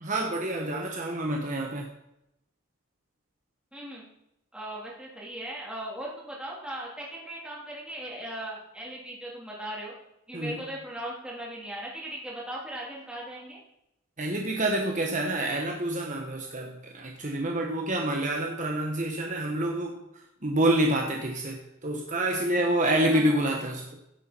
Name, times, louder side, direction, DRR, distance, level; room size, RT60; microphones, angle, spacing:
voice 1, 0.0-1.9 10.3-10.6 14.2-23.9, right 1 dB, 35° right, 1 dB, 1.3 m, -28 dB
voice 2, 3.7-4.1 4.5-9.9 10.3-13.6 23.1-23.4, right 1 dB, 5° right, -4 dB, 3.3 m, -38 dB
16.0 x 8.3 x 4.5 m, 0.84 s
head